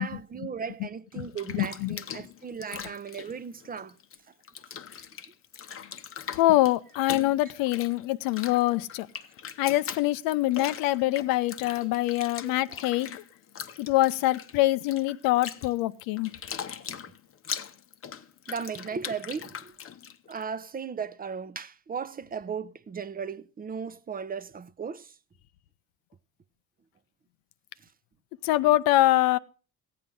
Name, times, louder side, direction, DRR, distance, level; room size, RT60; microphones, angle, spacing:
voice 1, 0.0-3.9 12.2-12.6 18.5-19.7 20.3-25.1, right 6 dB, 25° right, 0.6 m, -36 dB
Bathtub (filling or washing), 1.1-4.2 4.4-20.4, left 8 dB, 40° left, 0.7 m, -41 dB
voice 2, 1.5-2.0 6.4-9.1 9.6-13.2 13.8-16.3 28.4-29.4, left 16 dB, 80° left, 0.6 m, -24 dB
15.0 x 8.5 x 3.8 m
supercardioid pair, 90°, 34 cm